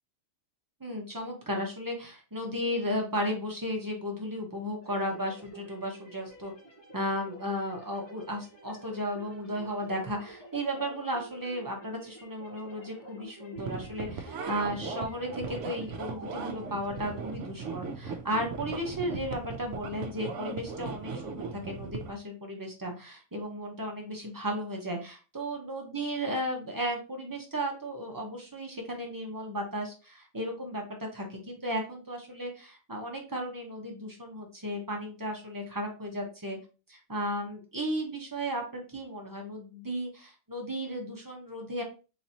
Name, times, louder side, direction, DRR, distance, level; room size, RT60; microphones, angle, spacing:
voice 1, 0.8-6.5 6.9-36.6 36.9-41.8, equal, 20° right, 1 dB, 0.6 m, -34 dB
sound 1, 4.8-17.4, right 2 dB, 60° left, 1.6 m, -49 dB
sound 2, 13.6-22.1, right 4 dB, 70° right, 0.9 m, -38 dB
4.0 x 2.8 x 2.7 m, 0.33 s
omnidirectional pair, 1.4 m